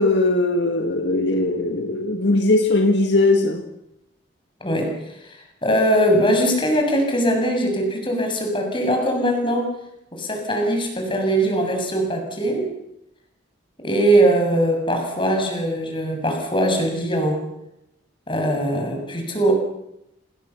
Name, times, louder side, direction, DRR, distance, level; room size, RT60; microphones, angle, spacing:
voice 1, 0.0-3.6, left 2 dB, 60° left, 2.0 m, -19 dB
voice 2, 4.6-9.7 10.1-12.7 13.8-17.4 18.3-19.5, right 1 dB, 25° left, 7.0 m, -21 dB
28.0 x 20.0 x 7.2 m
head